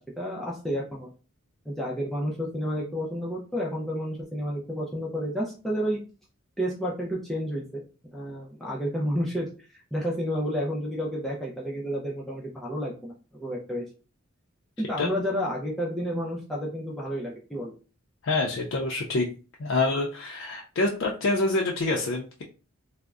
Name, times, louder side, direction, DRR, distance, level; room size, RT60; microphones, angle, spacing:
voice 1, 0.2-1.1 1.7-6.0 6.6-7.8 8.1-13.8 14.8-17.7, equal, ahead, -5 dB, 0.4 m, -31 dB
voice 2, 18.2-19.3 19.6-22.4, left 2 dB, 65° left, -1 dB, 0.4 m, -26 dB
3.5 x 2.0 x 2.3 m, 0.35 s
head